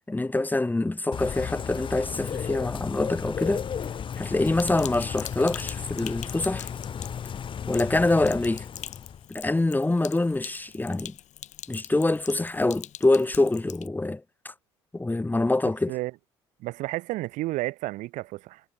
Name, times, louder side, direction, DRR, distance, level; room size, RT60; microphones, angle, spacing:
voice 1, 0.1-3.6 4.2-6.7 7.7-8.6 9.3-11.1 11.7-14.5 14.9-15.9, left 2 dB, 10° left, 1.3 m, -25 dB
Bird / Rain, 1.1-9.3, left 7 dB, 35° left, 0.8 m, -34 dB
Sink (filling or washing), 4.5-13.9, left 12 dB, 55° left, 2.3 m, -43 dB
voice 2, 16.6-18.6, right 18 dB, 60° right, 1.0 m, -31 dB
hypercardioid pair, 60°, 15 cm